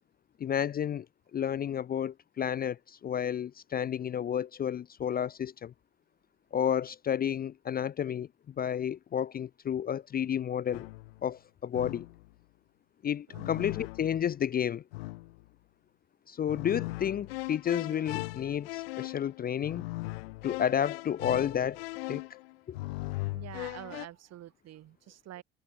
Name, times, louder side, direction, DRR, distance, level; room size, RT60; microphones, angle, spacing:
voice 1, 0.4-1.1 1.3-5.7 6.5-8.3 8.6-10.9 11.2-12.1 13.0-14.8 16.3-19.8 20.4-22.3 22.7-22.8, left 9 dB, 30° left, 0.5 m, -31 dB
sound 1, 10.7-11.2 11.7-12.3 13.3-14.3 14.9-15.5 16.5-24.1, left 21 dB, 80° left, 0.5 m, -39 dB
voice 2, 13.3-13.7 23.3-25.4, right 13 dB, 60° right, 4.1 m, -47 dB
hypercardioid pair, 55°, 29 cm